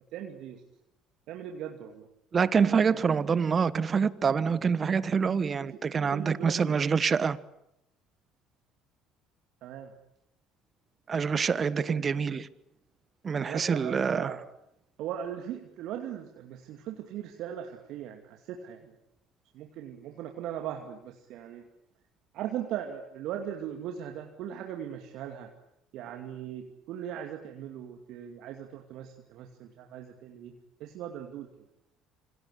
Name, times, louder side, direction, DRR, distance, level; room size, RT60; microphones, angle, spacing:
voice 1, 0.1-0.6 1.3-2.1 5.6-6.8 9.6-9.9 11.9-12.0 13.4-14.4 15.0-18.9 19.5-21.7 22.3-25.5 25.9-31.5, right 10 dB, 60° right, 2.5 m, -39 dB
voice 2, 2.3-7.4 11.1-12.5 13.2-14.3, right 6 dB, 35° right, 1.3 m, -26 dB
27.5 x 25.5 x 8.3 m
hypercardioid pair, 60°, 0 cm